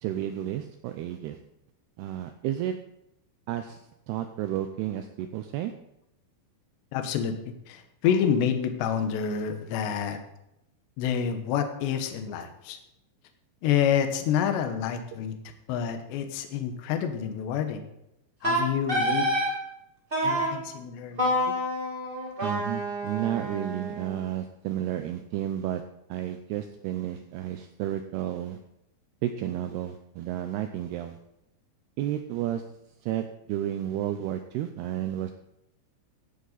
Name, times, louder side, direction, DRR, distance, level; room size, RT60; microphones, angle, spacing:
voice 1, 0.0-1.4 2.0-2.8 3.5-3.8 4.1-5.7 22.4-25.8 26.1-28.6 29.2-31.2 32.0-32.6 33.0-35.3, right 12 dB, 90° right, 8 dB, 2.3 m, -32 dB
voice 2, 6.9-10.2 11.0-12.8 13.6-15.4 15.7-17.8 18.4-19.3 20.2-21.3, left 8 dB, 70° left, 7 dB, 3.2 m, -28 dB
Wind instrument woodwind instrument, 18.4-19.5 20.1-20.6 21.2-24.2, equal, 20° right, 1.3 m, -28 dB
15.5 x 10.5 x 4.1 m, 0.85 s
omnidirectional pair, 5.5 m